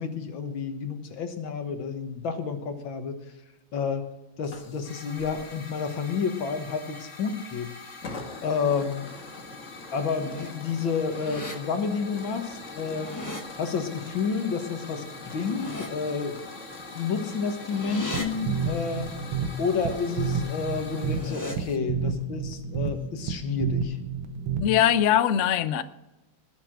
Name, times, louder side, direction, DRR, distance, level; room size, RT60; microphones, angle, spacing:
voice 1, 0.0-3.2 3.7-4.0 4.4-7.7 8.4-9.0 9.9-13.1 13.6-16.4 16.9-19.1 19.6-24.0, left 5 dB, 70° left, 2.1 m, -30 dB
Hiss / Fire, 4.4-21.8, left 3 dB, 40° left, 1.7 m, -42 dB
sound 1, 10.0-10.5 10.9-11.5 12.7-13.4 15.2-15.9 17.1-18.3 20.8-21.6, left 1 dB, 15° left, 0.8 m, -38 dB
sound 2, 18.1-25.0, right 6 dB, 85° right, 1.8 m, -31 dB
voice 2, 24.6-25.8, left 10 dB, 85° left, 0.6 m, -21 dB
20.0 x 6.7 x 6.1 m
omnidirectional pair, 2.3 m